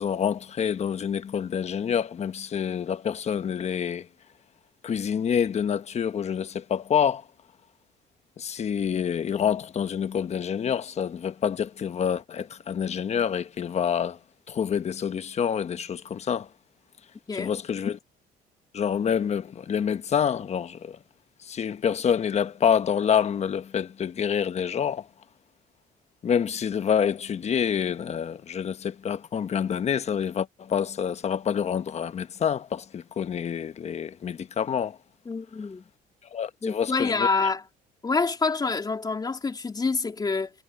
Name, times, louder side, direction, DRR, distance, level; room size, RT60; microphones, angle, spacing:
voice 1, 0.0-4.1 4.8-7.2 8.4-14.2 14.5-16.5 17.3-18.0 18.7-21.0 21.4-25.1 26.2-35.0 36.3-37.3, left 8 dB, 40° left, 1.1 m, -27 dB
voice 2, 35.3-35.9 36.6-37.6 38.0-40.5, left 4 dB, 25° left, 3.6 m, -27 dB
cardioid pair, 110°, 17 cm